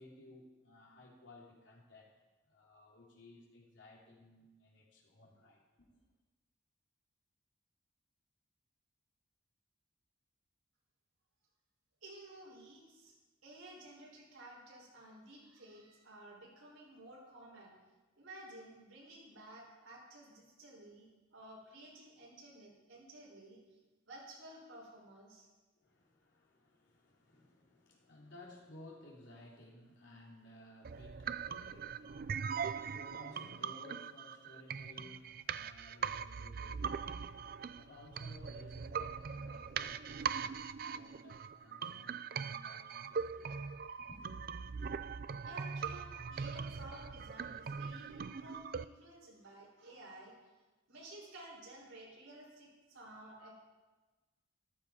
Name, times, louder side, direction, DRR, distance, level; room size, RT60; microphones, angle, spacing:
voice 1, 0.0-2.1 2.5-6.0 25.8-43.5 44.0-44.3 53.3-53.5, left 2 dB, 65° left, -3 dB, 3.3 m, -58 dB
voice 2, 12.0-13.1 13.4-17.7 18.2-23.6 24.1-25.5 45.4-50.4 50.9-53.5, right 1 dB, 85° right, -3 dB, 5.2 m, -54 dB
sound 1, 30.8-48.8, right 6 dB, 45° right, 0.4 m, -41 dB
14.0 x 13.5 x 4.9 m, 1.2 s
head